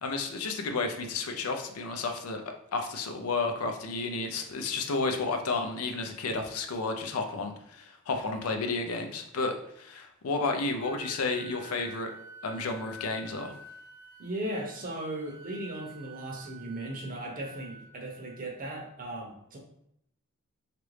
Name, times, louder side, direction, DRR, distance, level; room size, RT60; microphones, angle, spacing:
voice 1, 0.0-2.4 2.7-12.1 12.4-13.5, left 3 dB, 90° left, 5 dB, 0.5 m, -32 dB
Wind instrument woodwind instrument, 10.8-18.6, right 2 dB, 20° left, 0.6 m, -49 dB
voice 2, 14.2-19.6, right 1 dB, 40° right, 1 dB, 0.7 m, -37 dB
3.0 x 2.5 x 3.2 m, 0.74 s
head